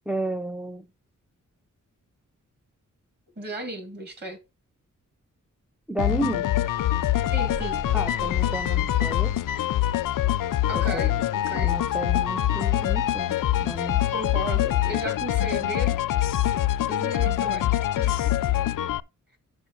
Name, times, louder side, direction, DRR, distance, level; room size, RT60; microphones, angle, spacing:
voice 1, 0.1-0.9 5.9-6.5 7.9-9.4 10.7-11.2 11.5-14.0, right 1 dB, 5° right, 0.4 m, -32 dB
voice 2, 3.4-4.4 7.3-7.8 10.7-11.8 14.1-16.0 16.9-17.7 18.0-18.4, right 1 dB, 35° right, 2.6 m, -34 dB
sound 1, 6.0-19.0, left 13 dB, 90° left, 0.5 m, -24 dB
Thunder / Rain, 6.3-11.9, right 1 dB, 65° right, 5.0 m, -44 dB
5.9 x 4.9 x 6.6 m
wide cardioid pair, 155°, 31 cm